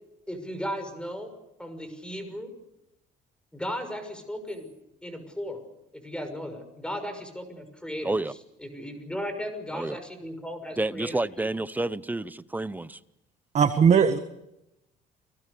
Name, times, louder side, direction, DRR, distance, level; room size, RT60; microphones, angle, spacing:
voice 1, 0.3-1.3 1.6-2.5 3.5-4.7 5.0-5.6 5.9-8.2 8.6-11.1, equal, 5° left, 6.2 m, -36 dB
voice 2, 10.8-13.0, right 2 dB, 10° right, 0.9 m, -29 dB
voice 3, 13.5-14.2, right 7 dB, 45° right, 1.6 m, -19 dB
30.0 x 19.5 x 6.9 m
cardioid pair, 110°, 17 cm